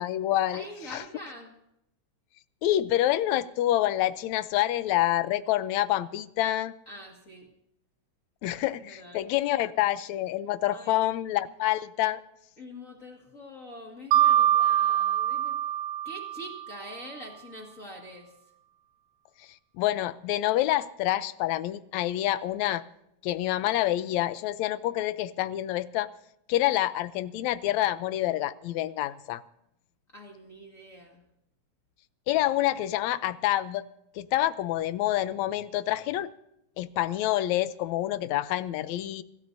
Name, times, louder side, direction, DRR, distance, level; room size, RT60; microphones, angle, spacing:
voice 1, 0.0-0.6 0.9-1.0 2.6-6.7 8.4-12.2 19.4-19.5 19.8-22.8 23.2-26.1 26.5-29.4 32.3-33.8 34.2-36.3 36.8-39.2, left 14 dB, 80° left, 14 dB, 2.0 m, -27 dB
voice 2, 0.5-1.5 6.9-7.5 8.8-9.2 10.7-11.0 12.6-15.6 16.0-18.4 30.1-31.2, equal, 30° left, -1 dB, 2.0 m, -45 dB
Mallet percussion, 14.1-16.9, right 11 dB, 85° right, 2.2 m, -24 dB
25.5 x 16.5 x 2.7 m, 0.81 s
omnidirectional pair, 3.3 m